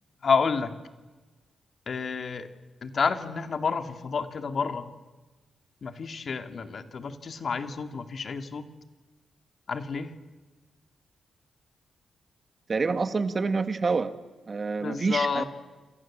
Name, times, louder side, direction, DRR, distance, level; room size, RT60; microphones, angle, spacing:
voice 1, 0.2-0.7 1.9-2.5 2.8-4.9 5.8-8.7 9.7-10.1 14.8-15.4, left 5 dB, 55° left, 8 dB, 2.4 m, -29 dB
voice 2, 12.7-14.1 14.5-15.4, right 4 dB, 40° right, 10 dB, 2.0 m, -27 dB
28.0 x 28.0 x 7.5 m, 1.2 s
cardioid pair, 80°, 0 cm